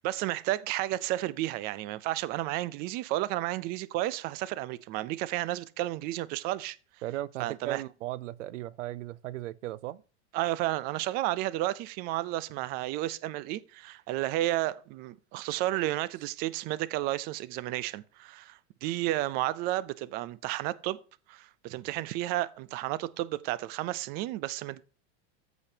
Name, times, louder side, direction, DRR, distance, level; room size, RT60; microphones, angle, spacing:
voice 1, 0.0-6.8 7.4-7.8 10.3-21.0 21.3-24.8, right 16 dB, 30° right, 0.4 m, -32 dB
voice 2, 7.0-10.0, right 14 dB, 90° right, 0.6 m, -36 dB
14.0 x 5.1 x 2.7 m
supercardioid pair, 150°, 35 cm